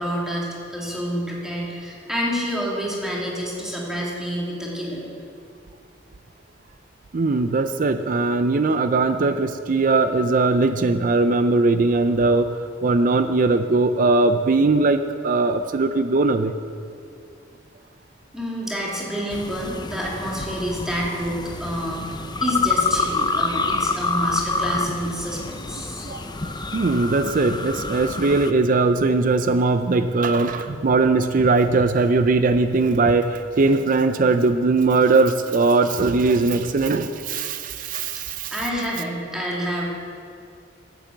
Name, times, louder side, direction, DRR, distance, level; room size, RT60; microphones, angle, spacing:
voice 1, 0.0-5.0 18.3-26.1 38.5-39.9, equal, 5° right, -5 dB, 2.6 m, -28 dB
voice 2, 7.1-16.5 26.0-26.2 26.7-38.6, right 3 dB, 45° right, 9 dB, 0.4 m, -20 dB
sound 1, 19.3-28.5, left 4 dB, 20° left, 0.6 m, -27 dB
12.0 x 9.0 x 7.8 m, 2.4 s
head